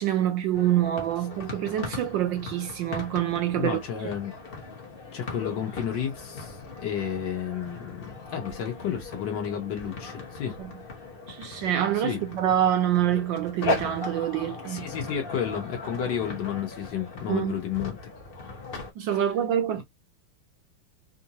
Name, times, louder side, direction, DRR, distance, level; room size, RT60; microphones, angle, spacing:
voice 1, 0.0-4.1 10.6-10.7 11.3-14.9 17.3-17.5 19.0-19.8, right 11 dB, 70° right, 1.2 m, -26 dB
sound 1, 0.5-18.9, left 3 dB, 40° left, 0.8 m, -38 dB
voice 2, 3.6-4.3 5.1-10.6 12.0-12.2 14.6-18.0 19.7-19.8, left 8 dB, 60° left, 1.4 m, -31 dB
3.7 x 2.6 x 2.8 m
omnidirectional pair, 2.4 m